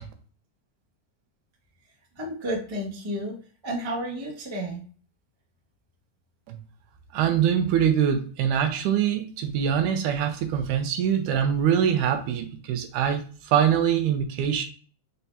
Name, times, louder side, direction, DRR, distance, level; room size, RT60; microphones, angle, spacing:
voice 1, 2.2-3.4 3.6-4.8, right 1 dB, 35° right, -4 dB, 0.4 m, -31 dB
voice 2, 7.1-14.6, right 8 dB, 85° right, 7 dB, 2.1 m, -24 dB
5.3 x 3.4 x 2.8 m, 0.41 s
omnidirectional pair, 3.6 m